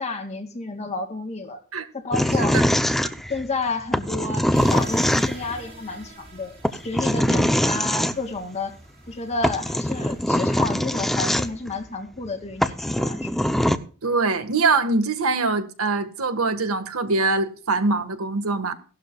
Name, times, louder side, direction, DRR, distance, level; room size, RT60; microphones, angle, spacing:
voice 1, 0.0-1.6 1.9-2.6 3.3-6.6 6.8-8.8 9.1-13.3, left 3 dB, 30° left, 2.5 m, -31 dB
sound 1, 2.1-3.5 3.9-5.6 6.6-8.1 9.1-9.2 9.4-11.7 12.3-12.4 12.6-13.8, equal, ahead, 0.7 m, -22 dB
sound 2, 4.5-11.5, right 2 dB, 45° right, 5.2 m, -47 dB
voice 2, 14.0-18.7, right 3 dB, 85° right, 1.7 m, -23 dB
17.0 x 12.5 x 2.4 m
head